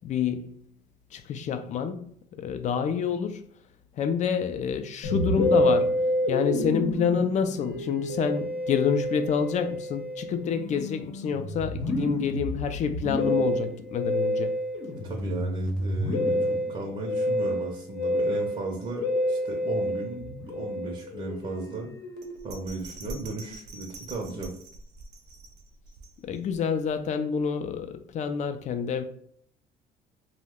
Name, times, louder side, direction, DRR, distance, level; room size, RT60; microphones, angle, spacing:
voice 1, 0.0-0.6 1.1-2.1 2.4-3.4 4.0-6.0 6.3-14.6 26.2-29.0, left 7 dB, 45° left, 0.4 m, -28 dB
Musical instrument, 5.0-22.6, equal, 75° left, 0.8 m, -29 dB
voice 2, 15.0-21.9 22.4-24.5, right 3 dB, 35° right, 0.6 m, -35 dB
Bell, 22.2-26.6 27.0-27.1, right 2 dB, 85° right, 0.5 m, -44 dB
2.7 x 2.0 x 3.5 m
cardioid pair, 110°, 17 cm